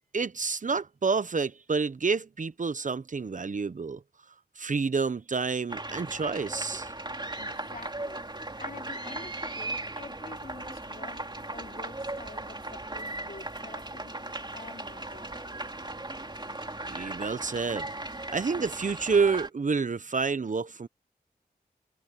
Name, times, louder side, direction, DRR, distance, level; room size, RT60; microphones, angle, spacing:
voice 1, 0.1-4.0 4.6-6.9 16.9-17.9 18.3-20.9, right 4 dB, 50° right, 0.8 m, -29 dB
sound 1, 5.7-19.5, right 2 dB, 30° right, 3.2 m, -37 dB
voice 2, 7.4-11.2 11.5-15.5, left 4 dB, 60° left, 2.9 m, -48 dB
cardioid pair, 45°, 16 cm